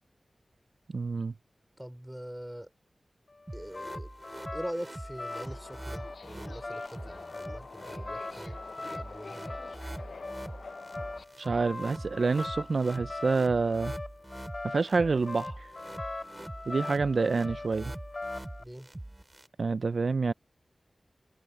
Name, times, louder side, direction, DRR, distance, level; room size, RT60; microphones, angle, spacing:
voice 1, 0.9-1.3 11.4-14.0 14.6-15.7 16.7-17.9 19.6-20.3, right 4 dB, 70° right, 0.3 m, -27 dB
voice 2, 1.8-2.7 3.5-4.1 4.5-9.5 18.6-18.9, equal, 5° right, 4.9 m, -43 dB
sound 1, 3.3-18.6, left 2 dB, 45° left, 2.7 m, -42 dB
sound 2, 3.5-19.5, right 1 dB, 25° right, 3.8 m, -44 dB
Subway metro underground, 5.3-11.2, left 4 dB, 85° left, 0.7 m, -47 dB
wide cardioid pair, 65°, 0 cm